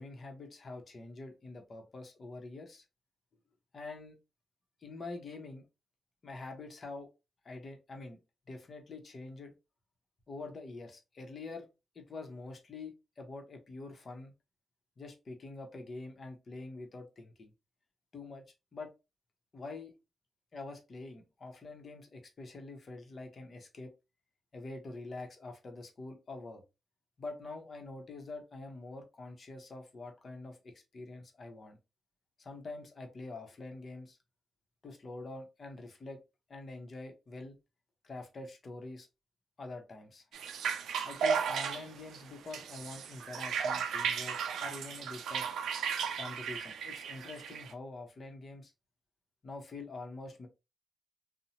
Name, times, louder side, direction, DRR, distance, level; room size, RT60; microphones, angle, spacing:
voice 1, 0.0-2.8 3.7-4.2 4.8-5.6 6.2-7.1 7.4-8.2 8.5-9.5 10.3-11.7 11.9-14.3 15.0-17.5 18.1-18.4 18.7-18.9 19.5-19.9 20.5-23.9 24.5-26.6 27.2-30.6 30.9-31.8 32.4-34.2 34.8-36.2 36.5-37.5 38.0-39.1 39.6-40.2 41.0-45.6 46.1-48.7 49.4-50.5, left 3 dB, 45° left, 4 dB, 0.8 m, -45 dB
sound 1, 40.3-47.7, right 6 dB, 90° right, 0.4 m, -35 dB
2.6 x 2.1 x 2.8 m, 0.26 s
cardioid pair, 80°, 0 cm